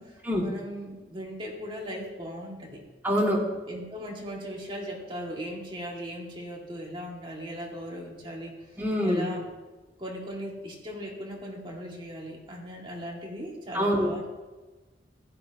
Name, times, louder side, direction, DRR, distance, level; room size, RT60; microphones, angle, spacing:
voice 1, 0.0-2.8 3.7-8.5 9.0-9.4 10.0-14.3, equal, 30° right, -3 dB, 2.6 m, -38 dB
voice 2, 3.0-3.4 8.8-9.3 13.7-14.3, equal, 10° right, -5 dB, 2.8 m, -25 dB
15.0 x 12.5 x 3.1 m, 1.2 s
head